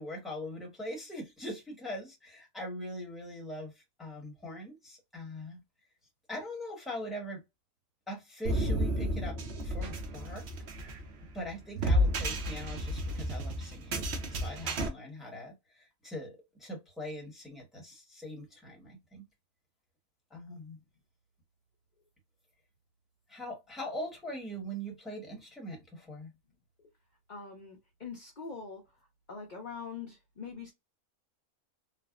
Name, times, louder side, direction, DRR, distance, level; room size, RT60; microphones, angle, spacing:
voice 1, 0.0-5.6 6.3-7.4 8.1-9.4 9.6-10.5 11.3-14.0 14.3-19.2 20.3-20.8 23.3-26.3, equal, ahead, 1.0 m, -42 dB
sound 1, 8.4-14.9, equal, 60° right, 0.8 m, -32 dB
voice 2, 27.3-28.8 29.3-30.7, left 5 dB, 45° left, 0.6 m, -43 dB
3.4 x 2.0 x 2.4 m
omnidirectional pair, 1.5 m